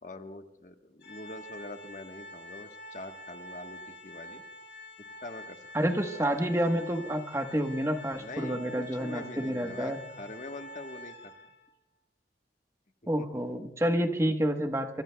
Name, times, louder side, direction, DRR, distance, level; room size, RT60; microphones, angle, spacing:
voice 1, 0.0-4.4 5.2-6.0 8.2-11.3 13.2-13.3, left 2 dB, 45° left, 6 dB, 1.2 m, -44 dB
Organ, 1.0-11.7, left 1 dB, 85° left, 2.7 m, -47 dB
voice 2, 5.7-10.0 13.1-15.0, equal, 15° right, 5 dB, 1.2 m, -29 dB
26.0 x 24.5 x 2.3 m, 0.78 s
head